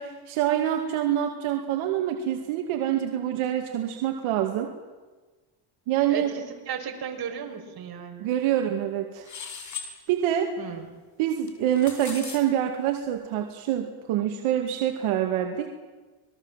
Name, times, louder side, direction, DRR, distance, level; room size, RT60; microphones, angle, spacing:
voice 1, 0.0-4.7 5.9-6.3 8.2-9.3 10.1-10.5 11.2-15.7, right 11 dB, 75° right, 3 dB, 2.4 m, -26 dB
voice 2, 6.1-8.3 10.6-10.9, right 8 dB, 45° right, 3 dB, 5.2 m, -35 dB
sound 1, 9.3-9.9 11.5-12.4, left 6 dB, 35° left, 5.1 m, -38 dB
27.0 x 20.5 x 7.5 m, 1.3 s
cardioid pair, 100°, 50 cm